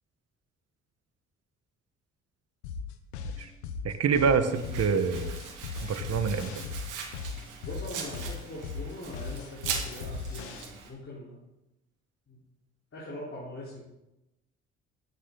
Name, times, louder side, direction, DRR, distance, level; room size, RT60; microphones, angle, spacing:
sound 1, 2.6-10.6, left 5 dB, 85° left, 1.0 m, -38 dB
voice 1, 3.8-5.4 5.8-6.6, right 6 dB, 50° right, 9 dB, 1.5 m, -26 dB
Domestic sounds home sounds, 4.5-10.9, right 6 dB, 70° right, 2.2 m, -40 dB
voice 2, 7.6-11.4 12.3-12.4 12.9-13.8, left 1 dB, 45° left, -6 dB, 4.4 m, -42 dB
13.0 x 9.8 x 4.1 m, 0.94 s
hypercardioid pair, 50°, 32 cm